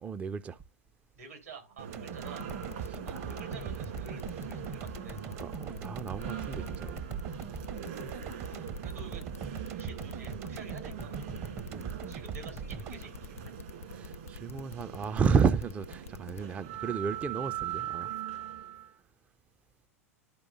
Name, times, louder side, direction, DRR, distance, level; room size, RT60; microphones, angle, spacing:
voice 1, 0.0-0.6 2.9-3.0 5.4-7.0 11.7-11.9 13.9-18.1, right 6 dB, 15° right, 0.4 m, -32 dB
voice 2, 1.2-2.5 2.8-5.2 8.4-9.2 9.8-11.2 12.1-13.6 16.3-16.5, right 4 dB, 75° right, 3.5 m, -49 dB
sound 1, 1.8-18.9, right 10 dB, 55° right, 2.3 m, -42 dB
sound 2, 1.9-14.2 14.5-14.6, right 7 dB, 35° right, 0.7 m, -41 dB
sound 3, 2.2-16.4, left 8 dB, 70° left, 0.5 m, -46 dB
12.0 x 4.7 x 2.4 m
figure-of-eight pair, 90°, 8 cm